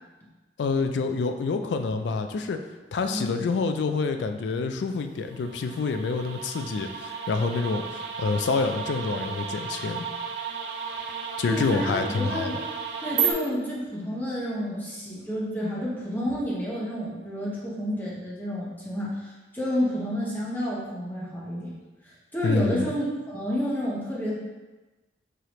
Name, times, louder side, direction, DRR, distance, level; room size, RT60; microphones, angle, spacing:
voice 1, 0.6-2.6 2.9-10.1 11.4-12.5 22.4-22.9, left 4 dB, 75° left, 7 dB, 0.3 m, -27 dB
voice 2, 3.1-3.4 11.5-12.6 13.0-21.7 22.3-24.4, equal, 10° left, -6 dB, 0.9 m, -30 dB
sound 1, 5.2-13.3, right 6 dB, 70° right, 0.4 m, -33 dB
4.8 x 2.8 x 3.0 m, 1.2 s
head